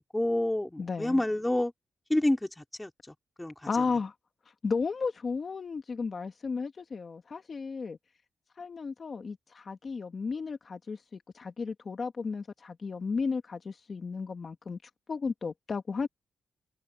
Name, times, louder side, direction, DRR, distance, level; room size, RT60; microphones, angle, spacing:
voice 1, 0.0-1.7 2.1-2.9 3.4-3.7, left 1 dB, 10° left, 3.8 m, -28 dB
voice 2, 0.8-1.2 3.7-4.1 4.6-8.0 8.6-14.8 15.1-16.1, left 4 dB, 40° left, 2.1 m, -34 dB
wide cardioid pair, 120°, 0 cm